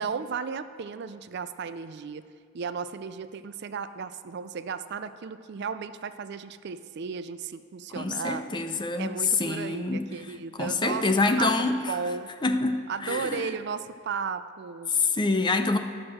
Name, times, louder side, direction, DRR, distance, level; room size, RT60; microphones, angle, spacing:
voice 1, 0.0-2.2 2.5-8.4 9.0-11.1 11.4-12.3 12.9-14.9, right 5 dB, 55° right, 12 dB, 0.4 m, -34 dB
voice 2, 8.0-10.1 10.6-12.0 12.4-13.5 14.9-15.8, left 3 dB, 20° left, 8 dB, 0.5 m, -26 dB
12.5 x 6.3 x 6.2 m, 2.1 s
head